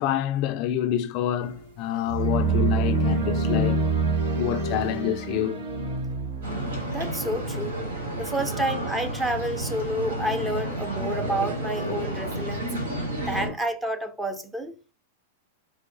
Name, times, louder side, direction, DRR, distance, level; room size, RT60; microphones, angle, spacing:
voice 1, 0.0-3.8 4.4-5.6, left 11 dB, 45° left, 0.3 m, -27 dB
sound 1, 1.4-1.6 2.1-6.9, right 3 dB, 75° right, 1.8 m, -26 dB
sound 2, 6.4-13.5, right 1 dB, 90° right, 1.7 m, -31 dB
voice 2, 6.9-7.8 8.2-12.7 13.2-14.7, right 1 dB, 10° right, 0.5 m, -29 dB
4.5 x 3.4 x 2.6 m
hypercardioid pair, 130°, 0 cm